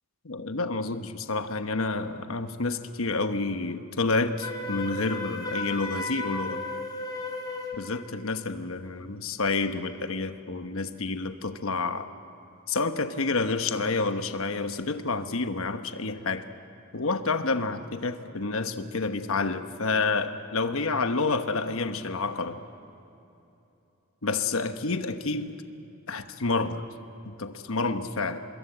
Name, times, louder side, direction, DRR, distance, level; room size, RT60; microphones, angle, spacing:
voice 1, 0.2-6.6 7.7-12.1 12.7-16.4 16.9-22.6 24.2-25.5 26.1-26.8 27.2-28.4, left 3 dB, 70° left, 8 dB, 1.2 m, -29 dB
Wind instrument woodwind instrument, 4.4-7.8, left 2 dB, 20° left, 3.8 m, -34 dB
25.0 x 21.5 x 7.9 m, 2.9 s
head